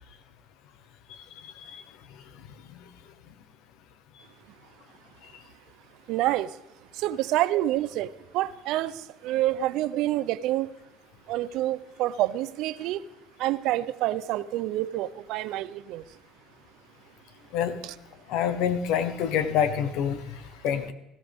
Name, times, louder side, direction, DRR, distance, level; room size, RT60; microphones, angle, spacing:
voice 1, 1.4-1.8 17.5-17.8 18.3-20.9, left 8 dB, 75° left, 11 dB, 1.2 m, -27 dB
voice 2, 6.1-6.6 6.9-10.7 11.3-13.0 13.4-16.0, right 15 dB, 70° right, 15 dB, 0.6 m, -27 dB
18.0 x 16.0 x 3.6 m, 0.94 s
cardioid pair, 165°, 0 cm